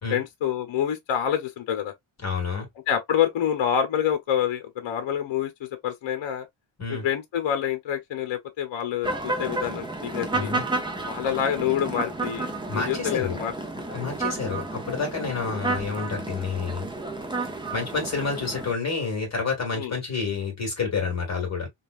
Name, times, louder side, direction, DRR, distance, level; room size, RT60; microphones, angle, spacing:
voice 1, 0.1-1.9 2.9-5.5 5.8-6.5 6.9-10.5 11.1-13.5 13.8-14.0 19.7-19.9, left 9 dB, 65° left, 0.9 m, -27 dB
voice 2, 2.2-2.6 6.8-7.0 10.3-10.6 12.7-13.4 13.8-16.9 17.7-21.7, left 4 dB, 30° left, 1.7 m, -29 dB
sound 1, 9.0-18.7, right 2 dB, 10° right, 0.6 m, -31 dB
5.2 x 2.4 x 2.4 m
wide cardioid pair, 180°, 50 cm